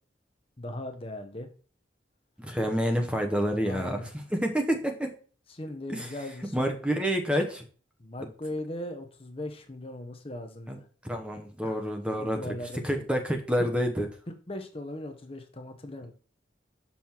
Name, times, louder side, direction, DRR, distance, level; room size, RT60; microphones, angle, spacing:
voice 1, 0.6-1.5 3.6-4.1 5.5-6.7 8.0-10.9 11.6-11.8 12.2-13.1 13.6-13.7 14.3-16.1, left 1 dB, 30° left, 6 dB, 0.9 m, -39 dB
voice 2, 2.4-5.1 5.9-6.1 6.5-7.6 10.7-10.8 11.0-12.5 12.8-14.1, equal, 5° right, 4 dB, 0.9 m, -28 dB
6.2 x 5.6 x 4.4 m, 0.39 s
head